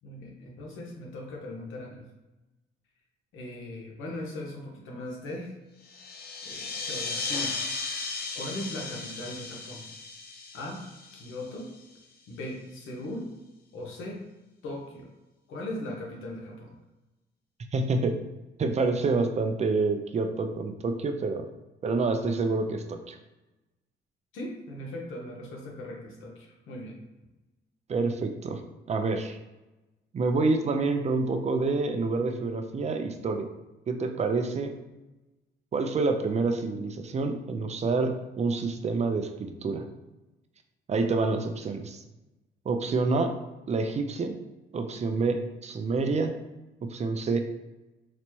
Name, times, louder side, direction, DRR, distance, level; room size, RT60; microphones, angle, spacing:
voice 1, 0.0-2.0 3.3-5.5 6.4-7.6 8.3-9.9 10.5-10.8 11.1-11.7 12.3-13.3 13.7-14.2 14.6-15.1 15.5-16.7 24.3-27.0, left 1 dB, 85° left, -1 dB, 1.0 m, -39 dB
sound 1, 5.8-12.0, left 4 dB, 50° left, 0.6 m, -36 dB
voice 2, 17.7-18.2 18.6-21.5 21.8-23.2 27.9-28.6 28.9-29.4 30.1-33.5 33.9-34.7 35.7-39.8 40.9-42.0 42.7-43.4 43.7-44.3 44.7-46.4 46.9-47.4, right 3 dB, 35° right, 5 dB, 0.4 m, -27 dB
4.0 x 2.1 x 3.0 m, 1.0 s
cardioid pair, 90°, 20 cm